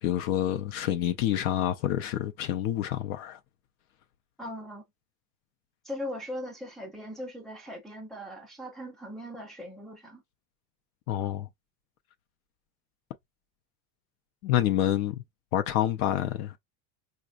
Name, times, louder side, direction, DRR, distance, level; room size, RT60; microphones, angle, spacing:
voice 1, 0.0-3.4 11.1-11.5 14.4-15.2 15.5-16.5, left 12 dB, 65° left, 0.6 m, -27 dB
voice 2, 4.4-4.8 5.8-10.2, left 1 dB, ahead, 0.3 m, -39 dB
4.9 x 2.2 x 2.4 m
supercardioid pair, 155°, 46 cm